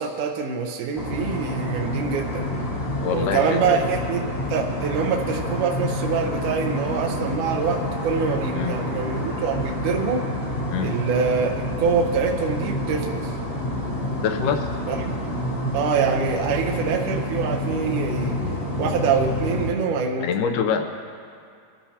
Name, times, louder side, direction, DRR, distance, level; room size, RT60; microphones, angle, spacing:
voice 1, 0.0-2.5 3.1-4.2 4.5-10.2 10.8-11.5 11.8-13.3 14.9-15.1 15.7-18.4 18.8-20.3, right 5 dB, 75° right, 0 dB, 1.9 m, -25 dB
sound 1, 1.0-19.7, left 1 dB, 40° left, 1.3 m, -28 dB
voice 2, 3.0-3.8 8.5-8.7 10.7-10.9 14.2-14.7 20.2-21.1, left 7 dB, 85° left, 5 dB, 1.8 m, -25 dB
23.5 x 13.0 x 2.8 m, 2.3 s
omnidirectional pair, 4.6 m